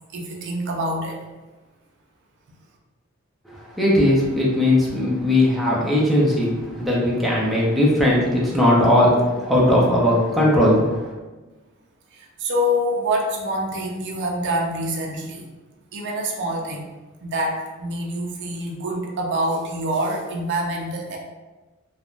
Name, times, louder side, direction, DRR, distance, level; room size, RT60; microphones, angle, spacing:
voice 1, 0.1-1.2 12.1-15.5 15.9-16.9 17.2-21.2, equal, 55° right, 0 dB, 0.5 m, -26 dB
voice 2, 3.8-11.0, left 1 dB, ahead, -6 dB, 0.6 m, -18 dB
3.1 x 2.1 x 2.4 m, 1.2 s
head